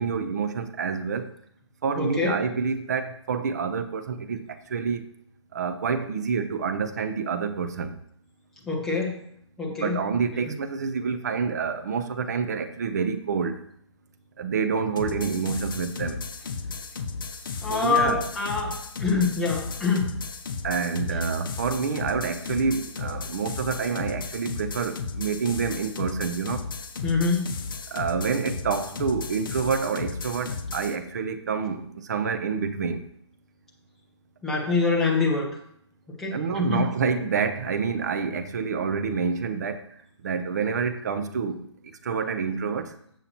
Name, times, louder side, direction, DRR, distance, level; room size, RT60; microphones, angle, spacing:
voice 1, 0.0-1.3 1.8-5.1 5.5-7.9 9.8-13.6 14.4-16.2 17.7-18.3 20.6-26.7 27.9-33.0 36.3-39.8 40.2-41.6 42.0-43.0, right 5 dB, 35° right, 0.7 m, -28 dB
voice 2, 2.0-2.4 8.7-9.2 9.6-10.0 10.5-10.6 17.6-20.1 27.0-27.5 34.4-35.5 36.2-36.9, left 4 dB, ahead, 1.0 m, -25 dB
sound 1, 15.0-31.0, left 4 dB, 45° left, 0.9 m, -34 dB
15.0 x 5.7 x 3.0 m
hypercardioid pair, 165°, 15 cm